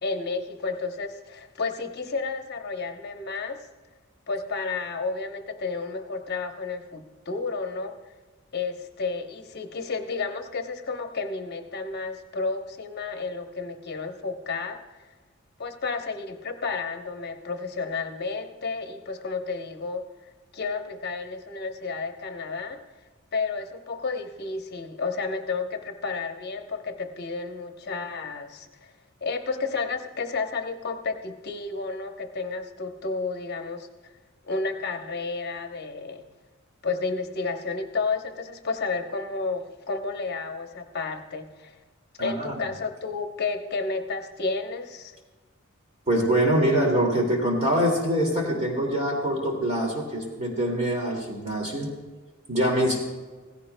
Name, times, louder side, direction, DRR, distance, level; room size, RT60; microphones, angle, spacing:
voice 1, 0.0-3.6 4.3-7.9 8.5-15.1 15.6-20.0 20.5-22.8 23.3-28.9 29.2-34.1 34.4-36.2 36.8-41.8 42.2-45.2, left 4 dB, 50° left, 5 dB, 0.9 m, -31 dB
voice 2, 42.2-42.5 46.1-51.9 52.5-53.0, right 1 dB, 35° right, 0 dB, 2.3 m, -24 dB
17.0 x 16.0 x 2.2 m, 1.3 s
head